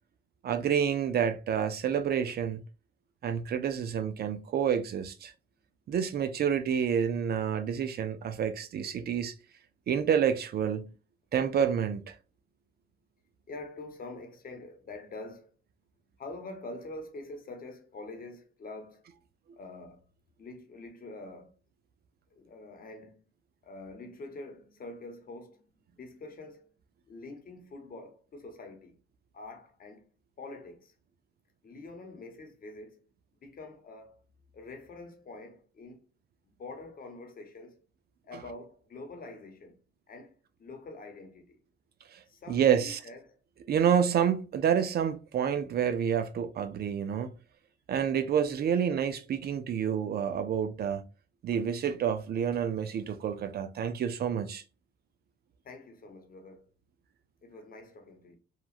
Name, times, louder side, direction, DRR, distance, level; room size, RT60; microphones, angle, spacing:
voice 1, 0.4-2.6 3.2-5.3 5.9-9.3 9.9-10.9 11.3-12.2 42.1-42.2 42.5-43.0 43.7-47.3 47.9-51.0 51.4-54.6, right 8 dB, 55° right, 0.4 m, -28 dB
voice 2, 13.5-15.5 16.2-19.1 19.5-20.0 20.4-21.6 22.3-23.2 23.6-25.7 26.0-26.7 27.1-29.0 29.3-30.1 30.4-30.9 31.6-33.0 33.4-34.2 34.5-36.0 36.5-37.8 38.2-39.8 40.1-41.6 42.3-43.4 55.6-56.7 57.4-58.4, left 2 dB, 45° left, 1.0 m, -45 dB
2.9 x 2.3 x 2.4 m
cardioid pair, 90°, 20 cm